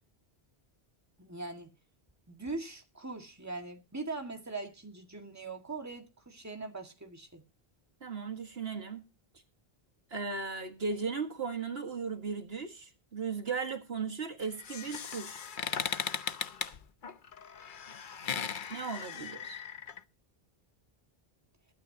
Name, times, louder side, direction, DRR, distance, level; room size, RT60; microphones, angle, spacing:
voice 1, 1.2-1.7 2.3-7.4, right 3 dB, 15° right, 1.9 m, -41 dB
voice 2, 8.0-9.0 10.1-15.4 18.7-19.6, right 5 dB, 75° right, 2.0 m, -36 dB
sound 1, 14.4-20.0, left 7 dB, 55° left, 0.9 m, -38 dB
22.0 x 9.1 x 2.8 m
omnidirectional pair, 1.0 m